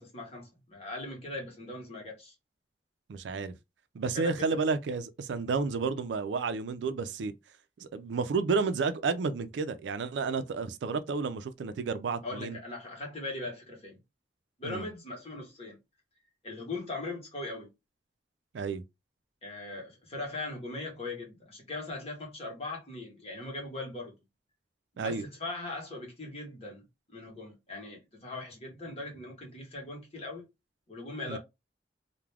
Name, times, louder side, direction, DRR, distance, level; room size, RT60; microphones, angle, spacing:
voice 1, 0.0-2.3 4.0-4.6 12.2-14.0 14.6-15.8 16.4-17.7 19.4-24.1 24.9-30.4 30.9-31.4, left 2 dB, 35° left, 1.0 m, -40 dB
voice 2, 3.1-3.5 3.9-7.3 7.8-12.6 14.6-14.9 18.5-18.8 25.0-25.2 31.3-31.4, right 4 dB, 80° right, 0.4 m, -31 dB
2.3 x 2.1 x 3.2 m
head